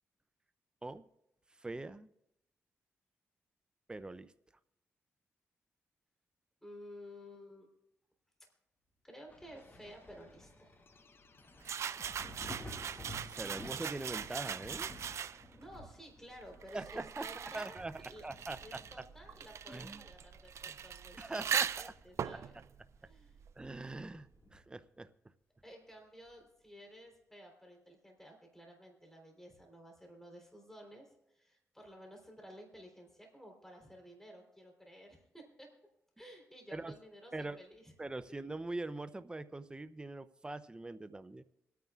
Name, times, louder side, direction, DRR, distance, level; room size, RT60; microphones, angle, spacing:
voice 1, 1.6-2.1 3.9-4.3 13.3-14.9 16.7-18.8 19.7-20.0 21.2-21.9 23.6-25.1 36.7-36.9 37.3-37.6 38.0-41.4, right 2 dB, 15° right, 12 dB, 0.5 m, -43 dB
voice 2, 6.6-7.7 9.0-10.7 15.3-17.8 18.1-18.3 18.6-22.6 23.0-23.4 25.6-35.7 36.2-37.9, equal, 5° left, 1 dB, 3.6 m, -54 dB
Thunder, 9.3-20.6 21.0-22.6 22.9-23.0 23.6-24.9 26.3-26.4, left 1 dB, 30° left, 1.9 m, -54 dB
sound 1, 9.6-15.2, left 2 dB, 45° left, 0.9 m, -58 dB
sound 2, 11.6-15.6 16.4-23.8, right 8 dB, 65° right, 0.4 m, -40 dB
27.0 x 9.3 x 2.4 m, 0.85 s
cardioid pair, 65°, 5 cm